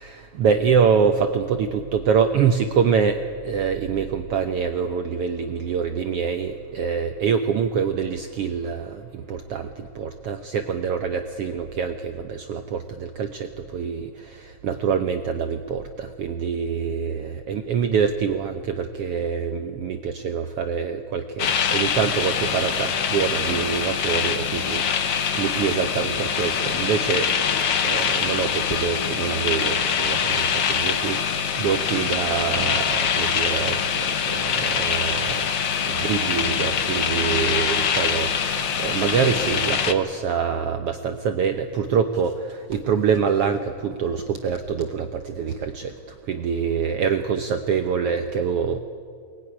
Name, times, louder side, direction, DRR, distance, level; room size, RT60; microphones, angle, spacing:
voice 1, 0.0-27.3 27.8-35.5 35.8-48.8, right 6 dB, 85° right, 7 dB, 1.3 m, -25 dB
sound 1, 21.4-39.9, left 7 dB, 75° left, 1.0 m, -24 dB
23.0 x 19.0 x 9.9 m, 2.3 s
omnidirectional pair, 3.8 m